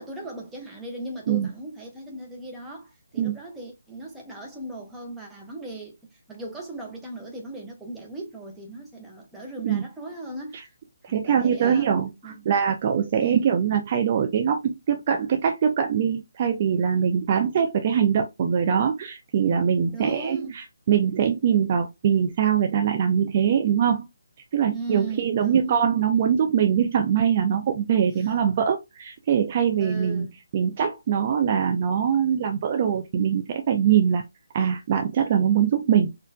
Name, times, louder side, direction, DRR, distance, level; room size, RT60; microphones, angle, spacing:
voice 1, 0.0-5.9 6.3-10.7 11.1-11.9 12.2-12.5 13.2-13.5 19.9-20.6 24.6-25.8 29.8-30.4, right 2 dB, 5° right, 0.9 m, -37 dB
voice 2, 11.0-24.1 24.5-30.3 30.5-34.2 34.5-36.1, right 8 dB, 30° right, 0.5 m, -23 dB
4.2 x 2.5 x 2.2 m
figure-of-eight pair, 145°, 0 cm